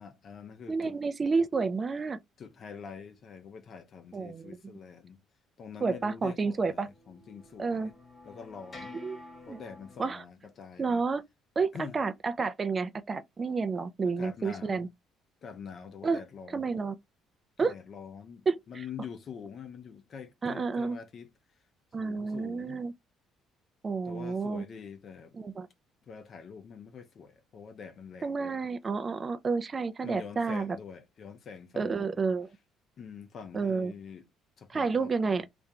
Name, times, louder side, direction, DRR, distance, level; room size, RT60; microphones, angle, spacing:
voice 1, 0.0-1.0 2.4-5.2 5.6-7.9 8.2-9.0 9.5-11.0 11.7-12.0 14.0-14.9 15.4-16.7 17.6-21.3 22.0-22.9 24.0-25.4 26.1-28.7 30.0-32.2 33.0-34.3 34.6-35.4, left 6 dB, 50° left, 0.6 m, -45 dB
voice 2, 0.7-2.2 4.1-4.5 5.8-6.9 7.6-7.9 9.0-9.2 9.5-9.6 10.0-10.2 10.8-11.2 11.6-14.9 16.0-16.2 16.5-16.9 17.6-17.7 18.5-18.6 20.4-21.0 21.9-22.9 23.8-24.6 25.4-25.7 28.2-30.8 31.8-32.5 33.5-33.9 34.7-35.5, right 4 dB, 30° right, 0.4 m, -30 dB
sound 1, 6.5-10.1, left 2 dB, 35° left, 1.2 m, -50 dB
2.4 x 2.2 x 2.8 m
supercardioid pair, 85°, 0 cm